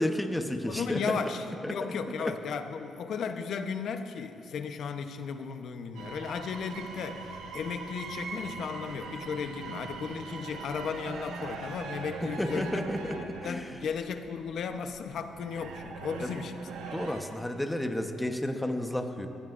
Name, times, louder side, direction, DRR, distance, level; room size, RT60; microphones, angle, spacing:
voice 1, 0.0-1.2 1.6-1.8 2.2-2.3 12.2-13.7 16.2-16.3 16.9-19.3, left 1 dB, 10° left, 5 dB, 1.1 m, -32 dB
voice 2, 0.6-12.9 13.4-16.7, left 6 dB, 65° left, 7 dB, 1.0 m, -35 dB
sound 1, 5.9-17.2, right 4 dB, 85° right, 1.4 m, -41 dB
22.5 x 15.5 x 2.6 m, 2.6 s
cardioid pair, 90°, 0 cm